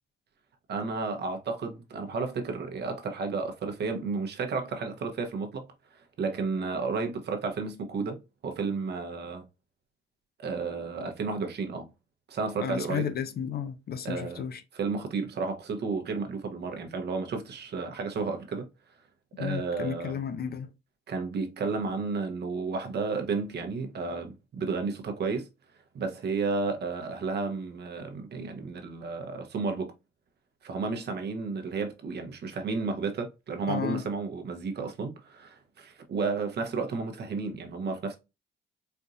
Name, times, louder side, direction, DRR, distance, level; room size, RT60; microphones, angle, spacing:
voice 1, 0.7-9.5 10.4-11.9 12.3-13.1 14.0-14.4 14.7-18.7 19.4-20.2 21.1-25.5 25.9-29.9 30.6-38.2, right 4 dB, 55° right, 1.0 m, -32 dB
voice 2, 12.6-14.6 19.4-20.7 33.7-34.0, left 8 dB, 50° left, 0.6 m, -33 dB
4.4 x 2.6 x 2.4 m
cardioid pair, 90°, 20 cm